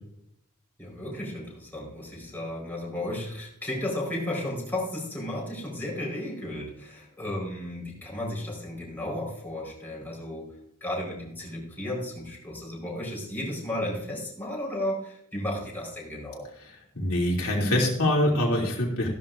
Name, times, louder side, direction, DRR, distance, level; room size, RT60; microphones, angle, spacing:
voice 1, 0.8-10.5 10.8-16.5, left 1 dB, 10° left, -4 dB, 4.6 m, -34 dB
voice 2, 16.9-19.1, left 1 dB, 70° left, -2 dB, 2.9 m, -24 dB
15.0 x 12.5 x 2.6 m, 0.75 s
head